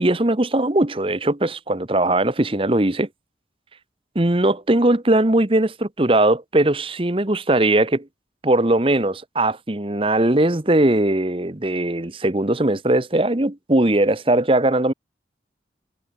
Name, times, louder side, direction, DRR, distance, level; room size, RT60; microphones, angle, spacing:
voice 1, 0.0-3.1 4.1-8.1 8.4-14.9, right 1 dB, 30° right, 1.1 m, -19 dB
head